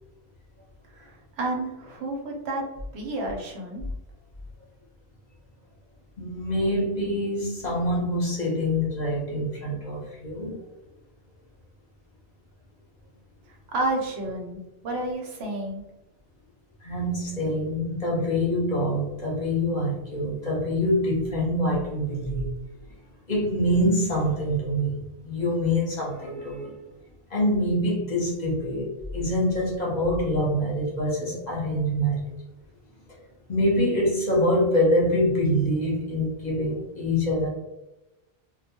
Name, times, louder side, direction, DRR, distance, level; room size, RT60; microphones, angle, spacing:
voice 1, 0.9-2.6 2.9-3.8 13.7-15.8, right 2 dB, 85° right, 0 dB, 1.0 m, -30 dB
voice 2, 6.2-10.6 16.8-22.6 23.3-26.7 27.3-32.2 33.5-37.5, equal, 45° left, -4 dB, 0.8 m, -25 dB
2.3 x 2.2 x 2.8 m, 0.98 s
omnidirectional pair, 1.1 m